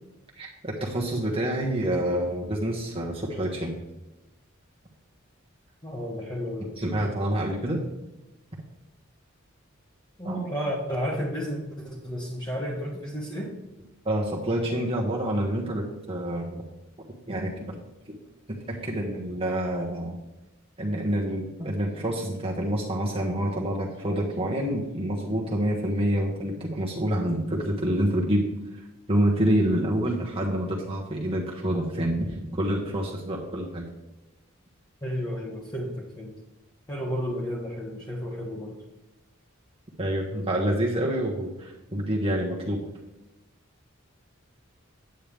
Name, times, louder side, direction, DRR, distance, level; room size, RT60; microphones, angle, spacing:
voice 1, 0.4-3.7 6.8-7.8 10.2-10.5 14.0-16.6 17.3-17.8 18.1-18.2 18.5-20.2 20.8-28.5 29.1-33.9 40.0-42.8, right 1 dB, 25° right, -2 dB, 1.3 m, -27 dB
voice 2, 5.8-6.8 10.2-13.6 35.0-36.3 36.9-38.8, equal, 20° left, -4 dB, 1.3 m, -32 dB
9.1 x 8.9 x 3.5 m, 0.97 s
head